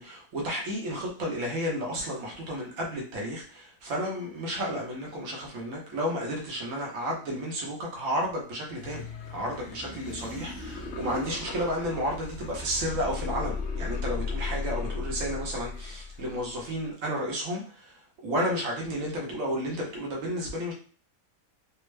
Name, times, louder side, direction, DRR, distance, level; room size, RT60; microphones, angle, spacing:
voice 1, 0.0-20.7, equal, 65° right, -1 dB, 1.2 m, -32 dB
sound 1, 8.8-16.8, left 4 dB, 60° left, 0.7 m, -36 dB
3.4 x 2.1 x 3.2 m, 0.40 s
omnidirectional pair, 1.6 m